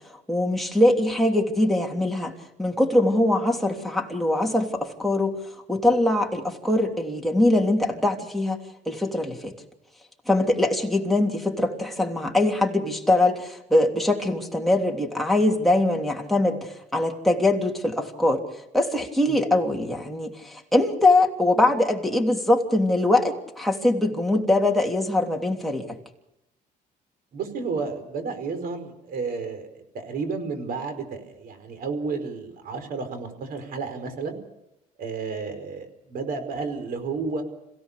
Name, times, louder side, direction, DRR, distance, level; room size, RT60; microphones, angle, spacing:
voice 1, 0.3-2.3 2.6-5.4 5.7-8.6 8.9-9.5 10.3-18.4 18.7-26.0, left 1 dB, ahead, 0 dB, 3.2 m, -22 dB
voice 2, 27.3-34.4 35.0-37.4, right 4 dB, 60° right, 9 dB, 4.9 m, -32 dB
27.0 x 17.0 x 6.9 m, 0.88 s
cardioid pair, 110°, 17 cm